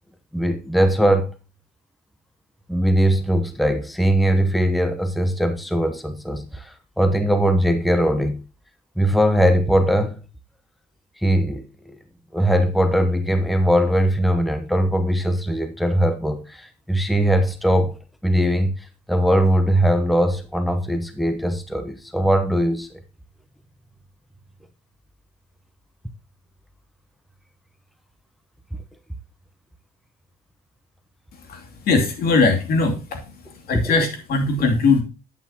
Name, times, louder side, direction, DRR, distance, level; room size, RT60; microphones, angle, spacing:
voice 1, 0.3-1.3 2.7-8.4 9.0-10.2 11.2-12.0 12.3-17.9 18.2-22.9 33.7-33.9, equal, ahead, 1.0 m, -20 dB
voice 2, 31.4-35.0, left 3 dB, 65° left, 2.7 m, -21 dB
9.8 x 8.5 x 2.9 m
cardioid pair, 110°, 17 cm